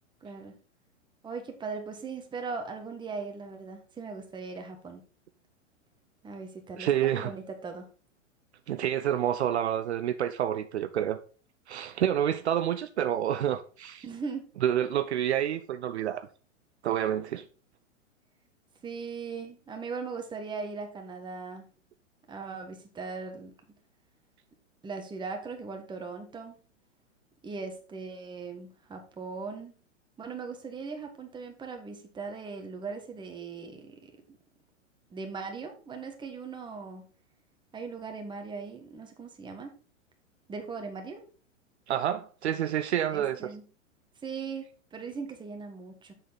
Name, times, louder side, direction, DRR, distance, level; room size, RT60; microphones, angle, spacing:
voice 1, 0.2-0.5 1.2-5.0 6.2-7.9 14.0-14.5 18.8-21.6 22.3-23.5 24.8-26.6 27.4-29.7 30.2-34.4 35.1-37.0 37.7-39.7 40.5-41.2 43.1-43.7 44.2-44.6 44.9-46.1, right 4 dB, 10° right, 1.4 m, -39 dB
voice 2, 6.8-7.3 8.7-11.2 11.7-14.0 14.6-16.3 16.8-17.4 41.9-43.5, right 10 dB, 60° right, 0.6 m, -28 dB
7.3 x 6.4 x 4.1 m
figure-of-eight pair, 110°, 39 cm